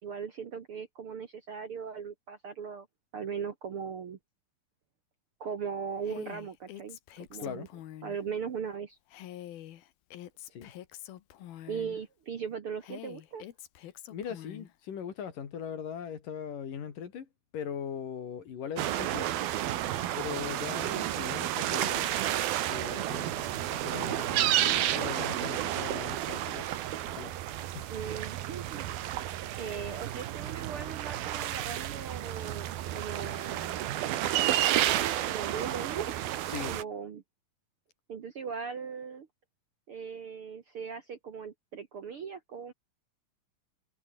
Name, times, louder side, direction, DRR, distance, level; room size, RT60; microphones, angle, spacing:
voice 1, 0.0-2.9 3.1-4.2 5.4-7.0 7.3-7.7 8.0-9.0 11.7-13.5 27.9-28.8 29.6-33.7 34.3-36.3 36.7-37.2 38.1-39.3 39.9-42.7, right 6 dB, 50° right, 1.8 m, -39 dB
Female speech woman speaking, 6.0-8.2 9.1-12.0 12.8-14.7, left 12 dB, 85° left, 3.4 m, -46 dB
voice 2, 7.4-7.7 10.5-10.7 11.6-11.7 14.1-17.3 17.5-19.3 20.2-22.2 22.7-26.7 27.1-27.4 27.7-27.9 36.5-36.8, left 8 dB, 65° left, 4.2 m, -40 dB
sound 1, 18.8-36.8, right 13 dB, 85° right, 3.3 m, -31 dB
omnidirectional pair, 4.2 m